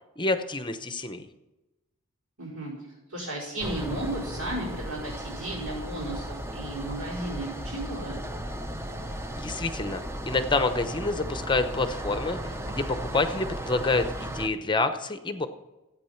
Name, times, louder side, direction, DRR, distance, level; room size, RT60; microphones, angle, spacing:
voice 1, 0.2-1.3 9.4-15.5, left 3 dB, 20° left, 9 dB, 0.8 m, -28 dB
voice 2, 2.4-8.2, right 1 dB, 80° right, -7 dB, 4.8 m, -34 dB
sound 1, 3.6-14.5, equal, 10° right, 0.7 m, -35 dB
14.0 x 8.9 x 5.8 m, 1.0 s
head